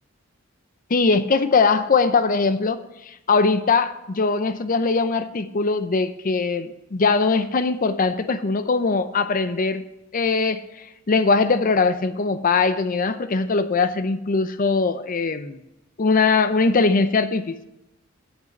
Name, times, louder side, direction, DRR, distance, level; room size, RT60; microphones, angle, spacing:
voice 1, 0.9-9.8 10.1-10.6 11.1-15.6 16.0-17.6, left 4 dB, 45° left, 12 dB, 0.6 m, -21 dB
8.2 x 6.1 x 7.8 m, 0.89 s
head